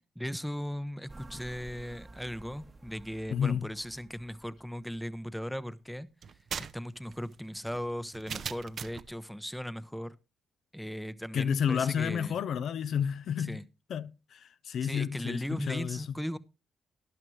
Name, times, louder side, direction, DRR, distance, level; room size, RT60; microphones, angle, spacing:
voice 1, 0.2-6.1 6.6-10.2 10.7-12.4 13.4-13.6 14.8-16.4, equal, ahead, 0.7 m, -38 dB
sound 1, 1.1-5.6, right 2 dB, 25° right, 1.0 m, -52 dB
voice 2, 3.3-3.7 11.3-13.6 13.9-16.0, left 8 dB, 65° left, 0.5 m, -31 dB
sound 2, 6.2-9.1, right 7 dB, 55° right, 0.6 m, -40 dB
12.5 x 11.0 x 3.1 m
cardioid pair, 90°, 0 cm